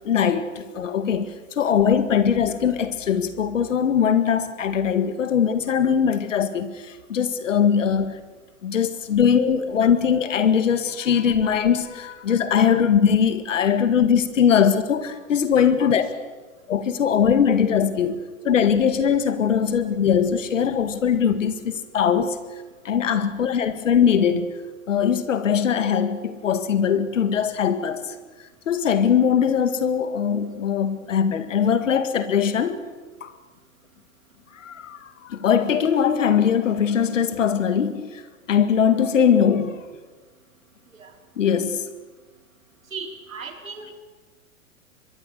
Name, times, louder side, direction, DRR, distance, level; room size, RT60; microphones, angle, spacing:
voice 1, 0.0-8.2 8.6-16.1 16.7-22.4 22.8-24.5 24.9-28.1 28.7-32.8 33.2-33.3 34.6-38.2 38.5-39.8 41.4-41.9, left 7 dB, 70° left, 11 dB, 2.1 m, -21 dB
voice 2, 42.9-44.0, right 5 dB, 80° right, 4 dB, 4.0 m, -37 dB
25.5 x 22.5 x 6.6 m, 1.3 s
figure-of-eight pair, 105°, 40 cm